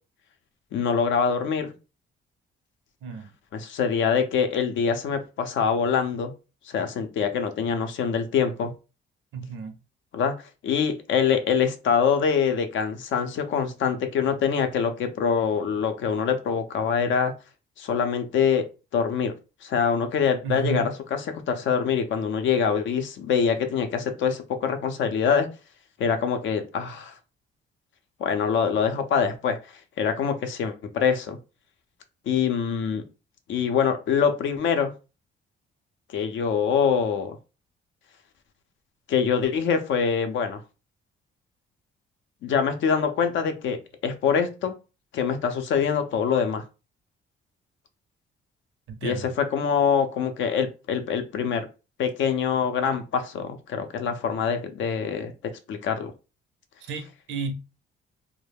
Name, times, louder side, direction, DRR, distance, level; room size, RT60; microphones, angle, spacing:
voice 1, 0.7-1.7 3.5-6.3 6.7-8.7 10.1-10.3 10.6-17.3 17.8-18.6 18.9-19.3 19.6-21.2 21.5-25.5 26.0-27.1 28.2-29.6 30.0-31.4 32.3-33.0 33.5-34.9 36.1-37.4 39.1-40.6 42.4-43.8 44.0-44.7 45.1-46.6 49.0-51.7 52.0-55.3 55.7-56.1, left 6 dB, 70° left, 0.5 m, -24 dB
voice 2, 3.0-3.3 9.3-9.8 20.4-20.9 48.9-49.3 56.8-57.5, right 5 dB, 75° right, 0.5 m, -32 dB
2.3 x 2.1 x 3.3 m
cardioid pair, 90°, 20 cm